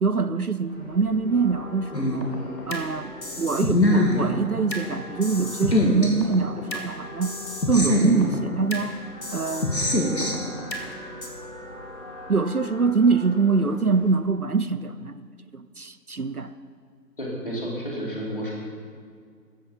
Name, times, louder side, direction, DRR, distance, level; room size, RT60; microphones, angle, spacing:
voice 1, 0.0-2.3 2.7-7.3 7.7-9.0 9.3-9.9 12.3-15.2 15.5-16.5, right 4 dB, 60° right, 13 dB, 0.7 m, -24 dB
sound 1, 0.6-14.1, left 1 dB, 15° left, 2.4 m, -41 dB
sound 2, 1.9-2.8 3.2-4.8 5.2-6.8 7.2-8.8 9.2-10.8 11.2-11.3, left 1 dB, 85° left, 3.1 m, -24 dB
voice 2, 17.2-18.5, equal, 30° left, -4 dB, 3.2 m, -31 dB
15.5 x 13.0 x 5.4 m, 2.1 s
figure-of-eight pair, 175°, 49 cm